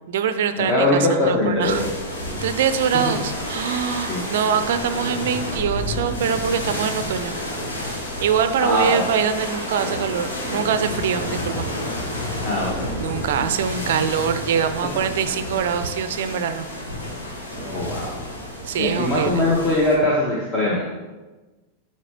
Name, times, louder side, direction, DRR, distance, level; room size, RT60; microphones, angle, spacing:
voice 1, 0.1-1.8 2.4-7.3 8.2-11.7 13.0-16.7 18.6-19.5, right 7 dB, 55° right, 10 dB, 0.5 m, -23 dB
voice 2, 0.6-1.9 4.1-4.2 8.6-9.0 12.4-13.5 17.6-18.2 18.8-20.8, left 1 dB, 25° left, -5 dB, 1.4 m, -22 dB
sound 1, 1.6-20.0, left 1 dB, 65° left, 1.6 m, -30 dB
11.5 x 4.4 x 3.0 m, 1.2 s
figure-of-eight pair, 90°, 0 cm